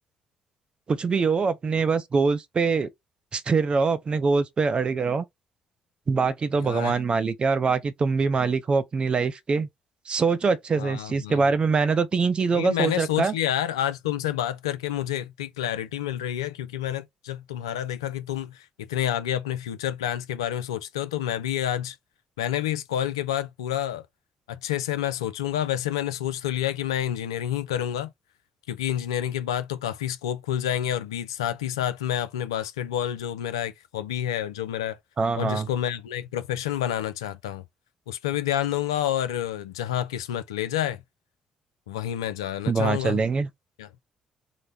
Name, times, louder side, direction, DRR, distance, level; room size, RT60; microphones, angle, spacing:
voice 1, 0.9-2.9 3.3-5.2 6.1-9.7 10.1-13.3 35.2-35.7 42.7-43.5, right 4 dB, 40° right, 0.6 m, -24 dB
voice 2, 6.5-7.0 10.8-11.5 12.5-22.0 22.4-24.0 24.5-28.1 28.7-35.0 35.4-37.6 38.1-41.0 41.9-43.2 43.8-43.9, left 11 dB, 80° left, 0.3 m, -29 dB
3.9 x 2.0 x 3.4 m
figure-of-eight pair, 45°, 3 cm